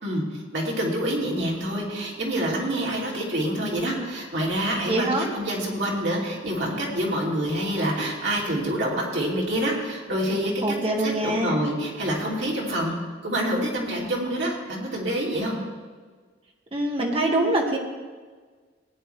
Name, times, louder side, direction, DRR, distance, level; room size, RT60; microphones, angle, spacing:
voice 1, 0.0-10.5 11.0-13.0 13.2-15.6, right 1 dB, 65° right, -3 dB, 2.9 m, -27 dB
voice 2, 4.9-5.3 10.6-11.6 16.7-17.8, right 1 dB, 30° right, 1 dB, 1.6 m, -24 dB
17.0 x 9.6 x 3.3 m, 1.5 s
head